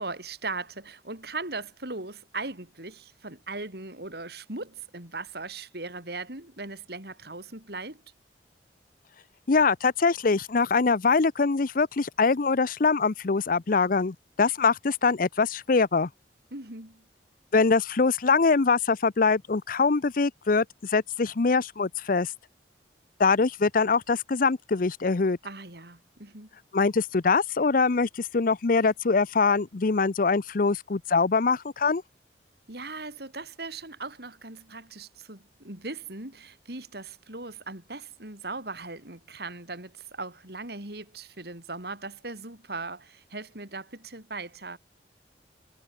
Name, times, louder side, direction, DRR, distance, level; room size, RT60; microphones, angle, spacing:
voice 1, 0.0-8.0 16.5-17.0 25.4-26.5 32.7-44.8, right 3 dB, 65° right, 5.1 m, -39 dB
voice 2, 9.5-16.1 17.5-22.3 23.2-25.4 26.7-32.0, left 4 dB, 50° left, 0.6 m, -23 dB
head